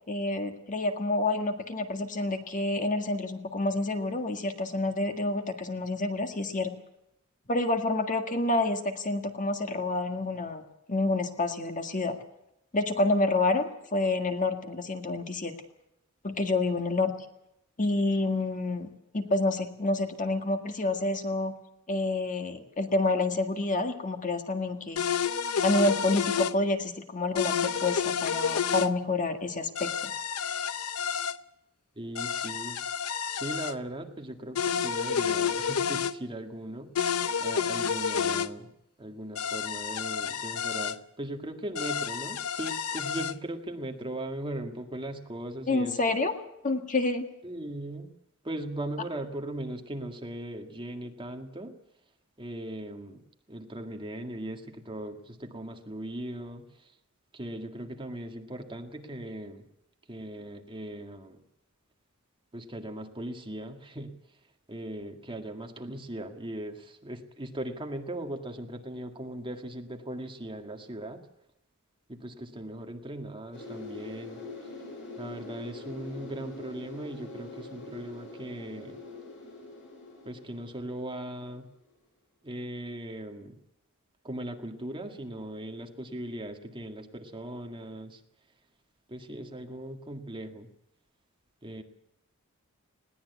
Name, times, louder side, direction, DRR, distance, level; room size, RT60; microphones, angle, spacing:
voice 1, 0.1-6.7 7.5-10.6 10.9-12.2 12.7-15.5 16.2-17.1 17.8-18.9 19.1-21.5 21.9-25.0 25.6-30.1 45.7-46.3 46.6-47.3, left 2 dB, 35° left, 6 dB, 1.8 m, -28 dB
sound 1, 25.0-26.6 27.4-28.9 29.8-31.4 32.2-33.7 34.6-36.1 37.0-38.5 39.4-41.0 41.8-43.3, left 7 dB, 80° left, 0.7 m, -30 dB
voice 2, 32.0-32.8 33.3-38.7 39.0-46.2 47.4-48.1 48.4-51.7 52.4-53.2 53.5-56.9 57.3-59.6 60.1-61.4 62.5-64.1 64.7-71.2 72.1-74.4 75.2-79.0 80.2-81.6 82.4-83.6 84.2-88.2 89.1-90.7 91.6-91.8, right 1 dB, 25° right, 4 dB, 1.9 m, -39 dB
sound 2, 73.5-81.5 81.8-81.9, left 2 dB, 60° left, 7.4 m, -44 dB
20.5 x 17.0 x 8.2 m, 0.84 s
head